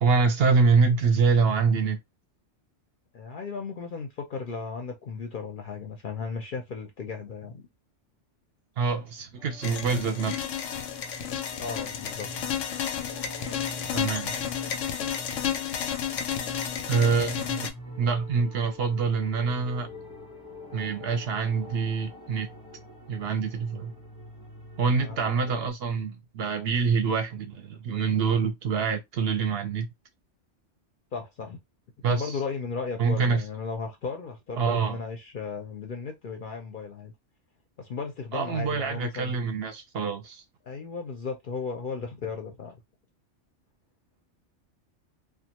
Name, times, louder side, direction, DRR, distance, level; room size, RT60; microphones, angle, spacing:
voice 1, 0.0-2.0 8.8-10.5 13.9-14.4 16.9-19.9 20.7-22.5 23.1-23.9 24.8-29.9 32.0-32.3 33.0-33.4 34.6-35.0 38.3-40.4, right 5 dB, 65° right, 0.7 m, -25 dB
voice 2, 3.1-7.7 11.6-12.3 25.0-25.2 25.4-25.7 31.1-31.6 32.0-37.1 37.8-39.4 40.6-42.8, left 5 dB, 55° left, 0.6 m, -35 dB
sound 1, 9.4-25.7, equal, 5° right, 0.8 m, -45 dB
sound 2, 9.6-17.7, left 9 dB, 80° left, 0.9 m, -32 dB
2.4 x 2.3 x 2.8 m
omnidirectional pair, 1.2 m